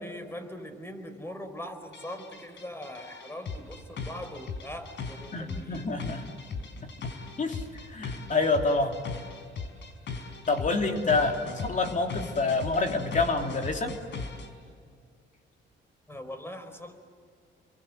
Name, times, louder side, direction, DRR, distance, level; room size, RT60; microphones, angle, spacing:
voice 1, 0.0-5.9 16.1-16.9, left 1 dB, 10° left, 8 dB, 4.5 m, -41 dB
sound 1, 1.9-14.5, left 4 dB, 65° left, 4.6 m, -38 dB
voice 2, 5.3-6.2 7.4-9.0 10.5-13.9, left 3 dB, 40° left, 4 dB, 3.0 m, -27 dB
29.5 x 23.5 x 7.9 m, 2.1 s
cardioid pair, 90°, 20 cm